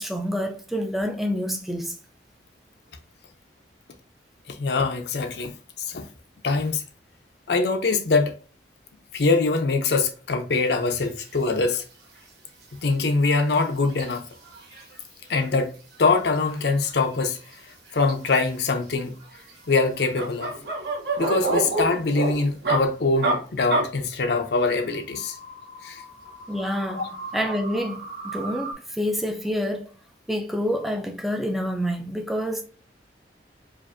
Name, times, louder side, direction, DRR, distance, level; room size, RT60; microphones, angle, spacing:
voice 1, 0.0-1.9 26.5-28.0 28.3-29.9 30.3-32.6, equal, ahead, 0.4 m, -27 dB
voice 2, 4.5-6.1 6.4-6.8 7.5-8.3 9.1-11.8 12.8-14.2 15.3-15.7 16.0-17.4 17.9-19.2 19.7-20.5 21.2-25.4 25.8-26.0 26.9-27.1, left 3 dB, 65° left, 0.6 m, -23 dB
Barbecue Out Back, 10.8-11.0 11.3-11.4 11.7-11.8 12.1-12.2 12.6-12.7 13.1-15.0 15.3-15.5 15.7-17.5 17.9-18.6 19.2-22.8 23.2-23.4 23.7-23.8 25.0-28.7, right 2 dB, 60° right, 1.3 m, -30 dB
4.9 x 2.6 x 2.6 m
head